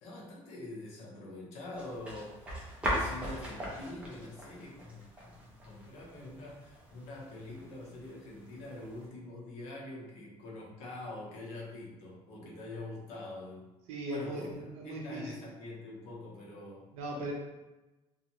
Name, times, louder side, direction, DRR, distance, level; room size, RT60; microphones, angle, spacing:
voice 1, 0.0-13.7 14.1-16.9, left 2 dB, 70° left, -3 dB, 0.8 m, -45 dB
sound 1, 1.7-9.1, equal, 10° right, 0.5 m, -40 dB
voice 2, 13.9-15.3 16.9-17.3, right 1 dB, 65° right, 0 dB, 0.7 m, -38 dB
2.5 x 2.4 x 2.9 m, 1.1 s
cardioid pair, 175°, 12 cm